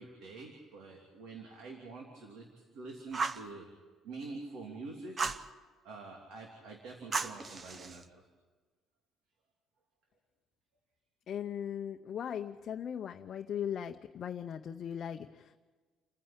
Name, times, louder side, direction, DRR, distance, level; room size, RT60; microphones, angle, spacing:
voice 1, 0.0-5.4 5.8-8.3, right 3 dB, 80° right, 1 dB, 3.1 m, -47 dB
Fire, 3.1-3.5 5.2-5.5 7.1-8.0, right 4 dB, 25° right, 0.8 m, -35 dB
voice 2, 11.3-15.6, left 9 dB, 40° left, 4 dB, 0.7 m, -38 dB
30.0 x 10.0 x 8.9 m, 1.4 s
cardioid pair, 165°, 0 cm